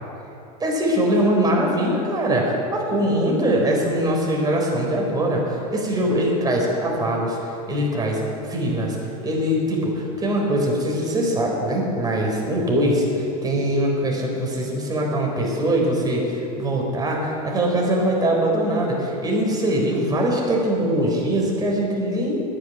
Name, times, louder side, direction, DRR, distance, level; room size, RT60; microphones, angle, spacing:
voice 1, 0.6-8.2 8.5-9.0 9.2-22.4, right 1 dB, 20° right, -1 dB, 4.1 m, -22 dB
10.5 x 9.8 x 9.4 m, 2.8 s
hypercardioid pair, 105°, 20 cm